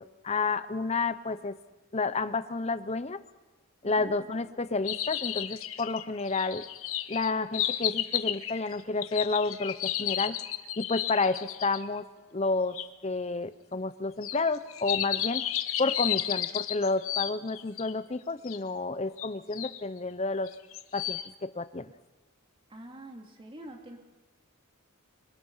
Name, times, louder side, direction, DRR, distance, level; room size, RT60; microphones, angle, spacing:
voice 1, 0.0-1.6 1.9-3.2 3.8-6.7 7.1-10.4 10.8-12.1 12.3-12.8 13.0-15.4 15.8-20.5 20.9-21.9, left 3 dB, 30° left, 13 dB, 0.8 m, -30 dB
sound 1, 4.8-11.8 12.7-12.9 14.2-17.9 18.5-18.6 19.2-19.8 20.5-21.3, left 12 dB, 75° left, 1.1 m, -33 dB
voice 2, 22.7-24.0, right 1 dB, 25° right, 1 dB, 3.0 m, -45 dB
25.5 x 25.0 x 5.7 m, 1.2 s
head